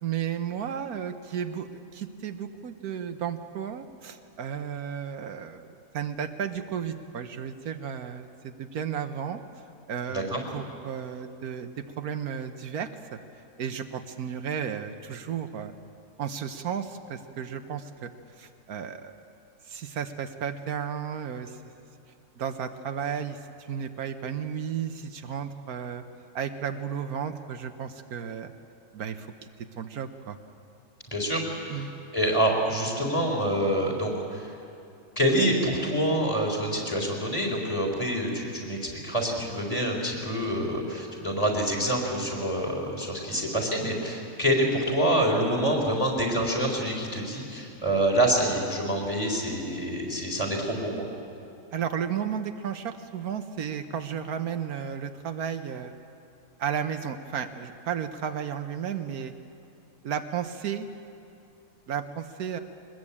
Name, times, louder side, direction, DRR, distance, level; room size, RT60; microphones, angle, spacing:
voice 1, 0.0-9.4 9.9-10.2 10.5-13.2 13.6-15.7 16.2-18.1 18.4-19.1 19.6-21.6 22.4-26.0 26.3-28.5 28.9-29.5 29.8-30.4 31.7-31.9 51.7-55.9 56.6-59.3 60.0-60.9 61.9-62.6, right 8 dB, 75° right, 8 dB, 1.4 m, -33 dB
voice 2, 10.1-10.4 31.1-31.9 32.1-34.5 35.2-51.1, right 1 dB, 25° left, 1 dB, 4.2 m, -26 dB
22.5 x 20.5 x 8.6 m, 2.6 s
omnidirectional pair, 1.6 m